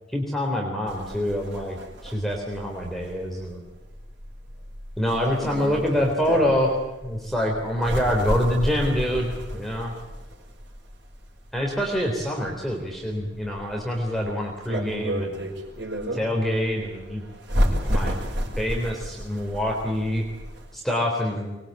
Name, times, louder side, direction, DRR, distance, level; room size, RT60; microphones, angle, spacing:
voice 1, 0.1-1.8 2.0-3.6 5.0-9.9 11.5-15.4 16.1-17.2 17.5-18.2 18.6-20.3 20.7-21.6, equal, ahead, 0 dB, 3.7 m, -26 dB
sound 1, 0.9-20.7, equal, 65° right, 5.6 m, -31 dB
24.5 x 22.0 x 9.0 m, 1.1 s
head